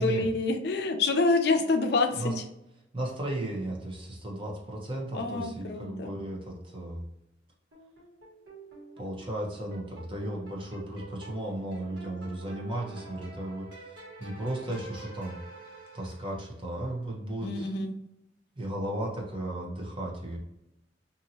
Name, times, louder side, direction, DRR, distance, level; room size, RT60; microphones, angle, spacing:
voice 1, 0.0-2.3 5.1-6.2 17.4-17.9, left 3 dB, 65° left, 6 dB, 0.4 m, -27 dB
voice 2, 2.9-7.0 9.0-15.4 15.9-17.8 18.6-20.4, right 1 dB, 30° right, -2 dB, 0.8 m, -35 dB
sound 1, 7.7-16.6, right 3 dB, 90° right, 1.3 m, -48 dB
2.7 x 2.6 x 2.7 m, 0.87 s
head